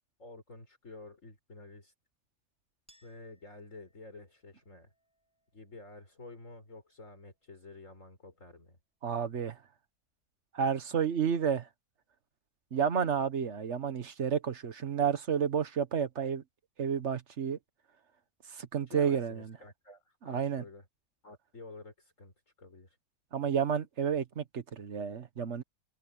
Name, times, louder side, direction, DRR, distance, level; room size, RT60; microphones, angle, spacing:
voice 1, 0.2-1.9 3.0-4.9 5.5-8.8 18.9-20.9 21.2-23.0, left 2 dB, 55° left, 5.3 m, -50 dB
Chink clink, 2.9-9.9, equal, 5° right, 7.0 m, -73 dB
voice 2, 9.0-9.6 10.5-11.7 12.7-16.4 16.8-17.6 18.5-19.6 20.2-20.6 23.3-25.6, right 7 dB, 50° right, 1.5 m, -31 dB
omnidirectional pair, 1.6 m